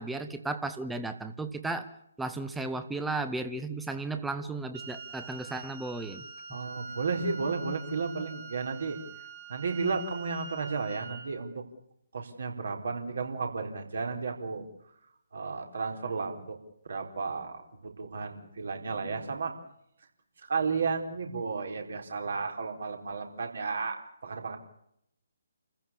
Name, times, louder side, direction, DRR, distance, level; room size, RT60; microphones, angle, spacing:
voice 1, 0.0-1.9 2.2-6.2, right 3 dB, 5° right, 8 dB, 1.4 m, -34 dB
Wind instrument woodwind instrument, 4.7-11.4, right 4 dB, 40° right, 6.0 m, -45 dB
voice 2, 6.5-9.0 9.5-11.6 12.1-14.7 15.3-16.6 16.8-19.5 20.5-24.6, right 4 dB, 55° right, 4 dB, 4.3 m, -33 dB
29.5 x 15.0 x 8.5 m, 0.75 s
figure-of-eight pair, 140°, 0 cm